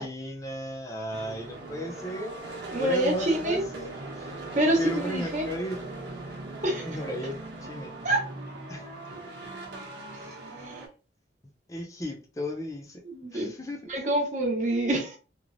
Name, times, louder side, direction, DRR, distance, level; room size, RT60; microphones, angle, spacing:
voice 1, 0.0-2.4 2.8-4.3 4.8-5.8 6.8-7.9 8.7-8.9 11.7-13.0 13.3-14.1, equal, 20° left, 0.5 m, -35 dB
sound 1, 1.1-10.9, right 2 dB, 80° right, 1.0 m, -40 dB
voice 2, 2.7-3.6 4.5-5.4 6.6-6.9 8.0-8.2 10.6-10.8 13.0-13.5 13.9-15.2, right 1 dB, 40° right, 0.9 m, -26 dB
3.1 x 2.1 x 2.5 m
head